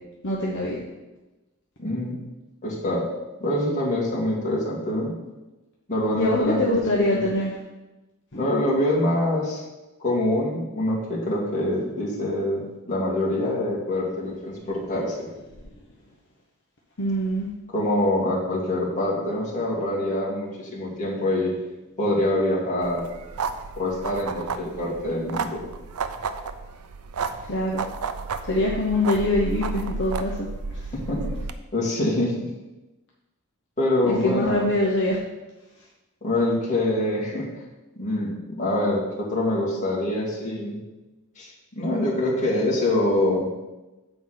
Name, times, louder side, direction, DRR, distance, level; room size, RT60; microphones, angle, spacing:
voice 1, 0.2-0.8 6.1-7.5 17.0-17.5 27.5-27.9 28.5-30.5 30.7-30.8 34.0-35.2, left 1 dB, 55° left, -3 dB, 1.1 m, -24 dB
voice 2, 1.8-2.2 2.6-3.1 3.4-5.1 5.9-7.2 8.4-9.6 10.0-15.3 17.7-21.5 22.0-23.0 23.8-25.6 31.1-31.2 31.7-32.5 33.8-34.7 36.2-37.5 38.0-40.8 41.4-43.5, left 1 dB, 35° left, -5 dB, 2.3 m, -25 dB
sound 1, 22.8-31.5, right 4 dB, 80° right, 0.5 m, -32 dB
7.9 x 4.6 x 5.9 m, 1.1 s
head